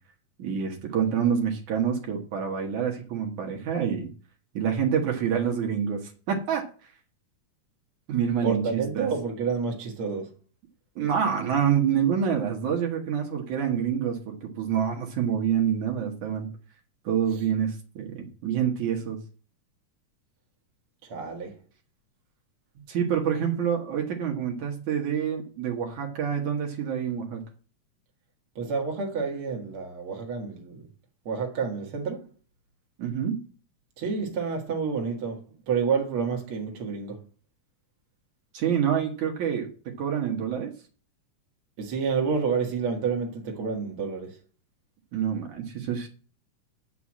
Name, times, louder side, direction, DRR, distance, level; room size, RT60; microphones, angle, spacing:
voice 1, 0.4-4.1 4.5-6.0 6.3-6.6 8.1-8.6 9.0-9.1 11.0-16.5 17.0-19.2 22.9-27.4 33.0-33.4 38.5-39.7 40.0-40.7 45.1-46.1, right 8 dB, 65° right, 2.7 m, -27 dB
voice 2, 8.4-10.3 17.3-17.4 21.0-21.6 28.6-30.9 31.3-32.3 34.0-37.2 41.8-44.4, right 5 dB, 45° right, 2.2 m, -29 dB
8.1 x 6.3 x 7.3 m
omnidirectional pair, 3.8 m